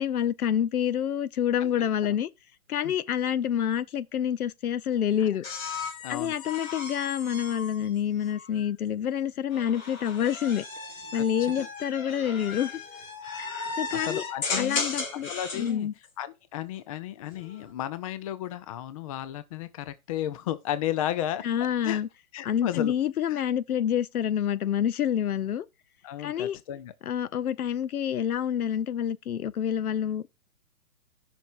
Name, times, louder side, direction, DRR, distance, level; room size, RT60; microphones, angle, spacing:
voice 1, 0.0-2.3 2.7-5.4 6.1-10.6 11.1-12.7 13.4-13.5 13.8-14.2 14.6-15.9 21.4-22.1 22.4-25.7 26.2-26.6 27.0-30.2, left 9 dB, 85° left, 0.8 m, -27 dB
sound 1, 5.4-8.7 9.5-15.7 17.2-17.7, left 4 dB, 65° left, 3.4 m, -36 dB
voice 2, 6.0-6.3 11.2-11.7 13.7-14.8 15.1-15.9 16.2-21.4 21.8-22.0 22.3-22.9 23.3-23.4 26.0-26.9, left 12 dB, 25° left, 0.5 m, -34 dB
16.0 x 6.0 x 2.6 m
hypercardioid pair, 145°, 43 cm